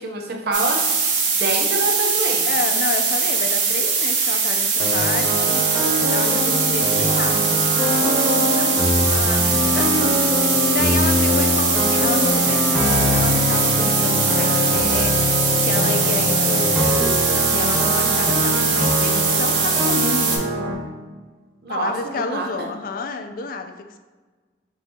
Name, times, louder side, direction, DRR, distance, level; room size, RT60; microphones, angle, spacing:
voice 1, 0.0-2.5 21.6-22.7, right 2 dB, 55° right, 3 dB, 0.5 m, -26 dB
sound 1, 0.5-20.4, right 5 dB, 85° right, 0.9 m, -21 dB
voice 2, 2.4-10.3 10.7-20.5 21.7-24.0, left 4 dB, 50° left, 7 dB, 0.3 m, -30 dB
sound 2, 4.8-20.7, left 1 dB, ahead, 0.7 m, -22 dB
5.6 x 2.6 x 2.7 m, 1.4 s
head